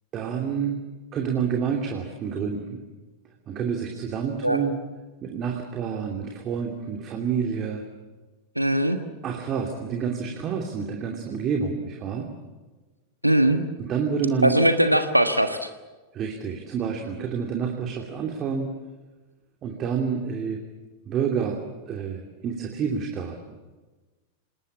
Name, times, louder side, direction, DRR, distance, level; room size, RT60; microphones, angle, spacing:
voice 1, 0.1-0.8 1.1-2.8 3.5-4.8 5.2-7.8 9.2-12.3 13.8-14.6 16.1-18.7 19.6-20.6 21.1-21.6 21.9-23.4, right 6 dB, 30° right, 2 dB, 2.8 m, -28 dB
voice 2, 8.5-9.0 13.2-13.6 14.4-15.7, right 1 dB, 90° right, 8 dB, 1.5 m, -20 dB
27.0 x 19.5 x 8.6 m, 1.2 s
figure-of-eight pair, 90°, 0 cm